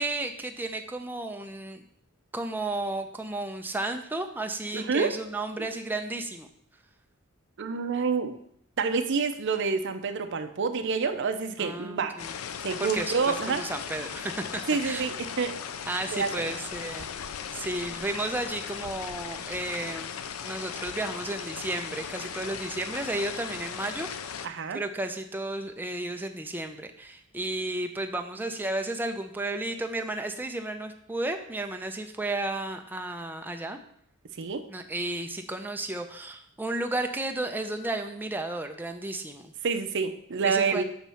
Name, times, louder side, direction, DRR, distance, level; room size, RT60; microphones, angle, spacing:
voice 1, 0.0-1.8 2.3-6.5 11.6-12.3 12.8-15.1 15.9-17.1 17.5-20.1 20.4-33.8 34.7-39.5 40.4-40.8, right 2 dB, 10° right, 5 dB, 0.4 m, -33 dB
voice 2, 4.7-5.1 5.6-5.7 7.6-8.4 8.8-12.2 12.6-13.6 14.7-15.6 16.1-16.5 24.4-24.8 34.4-34.6 39.6-40.8, right 5 dB, 60° right, 8 dB, 0.6 m, -28 dB
sound 1, 12.2-24.5, left 7 dB, 80° left, 0.4 m, -37 dB
7.2 x 3.1 x 5.5 m, 0.68 s
head